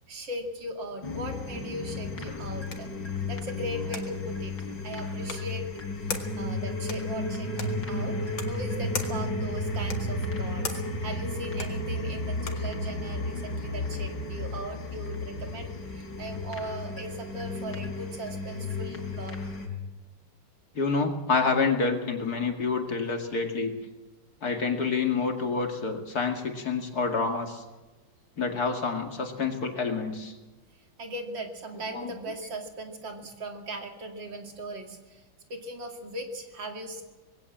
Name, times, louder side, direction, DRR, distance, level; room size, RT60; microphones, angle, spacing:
voice 1, 0.1-2.9 3.3-5.7 6.0-8.2 8.4-19.4 31.0-35.2 35.5-37.0, right 1 dB, 85° right, 3 dB, 3.3 m, -39 dB
sound 1, 1.0-19.7, left 2 dB, 70° left, 3.8 m, -33 dB
sound 2, 2.0-12.8, left 4 dB, 90° left, 2.7 m, -42 dB
voice 2, 20.7-23.7 24.4-27.6 28.4-30.3 31.9-32.1, left 4 dB, 55° left, 4 dB, 2.8 m, -28 dB
20.5 x 17.0 x 7.5 m, 1.2 s
omnidirectional pair, 2.0 m